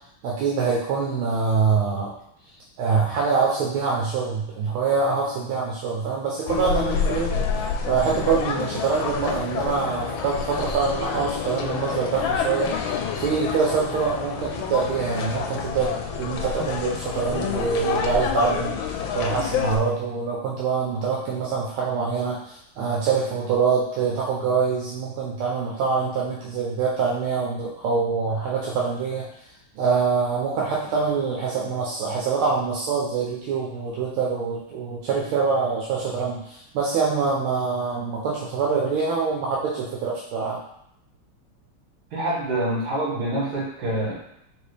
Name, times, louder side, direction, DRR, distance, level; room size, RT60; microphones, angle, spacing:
voice 1, 0.2-2.1 2.8-18.8 19.1-29.2 29.7-40.6, right 5 dB, 80° right, -3 dB, 1.5 m, -25 dB
sound 1, 6.5-19.8, left 6 dB, 75° left, 1.3 m, -28 dB
voice 2, 42.1-44.1, right 1 dB, 65° right, -7 dB, 2.4 m, -26 dB
4.6 x 2.9 x 3.2 m, 0.75 s
omnidirectional pair, 2.3 m